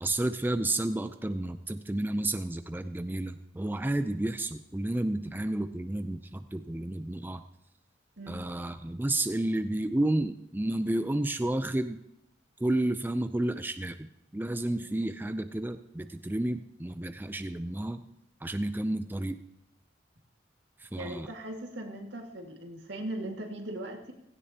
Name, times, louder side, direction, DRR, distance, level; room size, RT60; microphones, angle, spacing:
voice 1, 0.0-7.4 8.3-12.0 12.6-18.0 18.4-19.4 20.8-21.3, right 1 dB, 10° right, 9 dB, 0.4 m, -31 dB
voice 2, 20.9-24.1, right 1 dB, 80° right, 2 dB, 2.0 m, -39 dB
16.5 x 15.5 x 2.9 m, 0.84 s
head